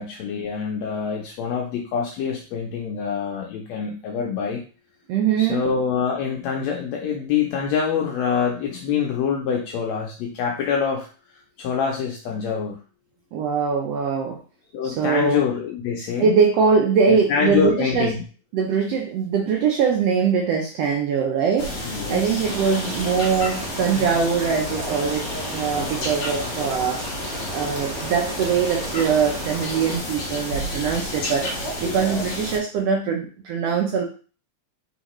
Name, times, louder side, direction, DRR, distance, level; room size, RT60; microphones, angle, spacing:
voice 1, 0.0-4.6 5.4-11.1 11.6-12.8 14.7-16.3 17.1-18.2 21.8-22.4, left 6 dB, 75° left, 0 dB, 1.8 m, -25 dB
voice 2, 5.1-5.7 13.3-14.4 14.8-15.4 16.2-18.1 18.5-21.7 22.1-27.0 27.5-31.5 31.8-34.1, right 6 dB, 80° right, 2 dB, 1.5 m, -22 dB
sound 1, 21.6-32.6, left 1 dB, 60° left, 1.2 m, -30 dB
sound 2, 22.4-30.0, right 2 dB, 45° right, 1.9 m, -36 dB
4.3 x 3.9 x 3.0 m, 0.37 s
omnidirectional pair, 3.4 m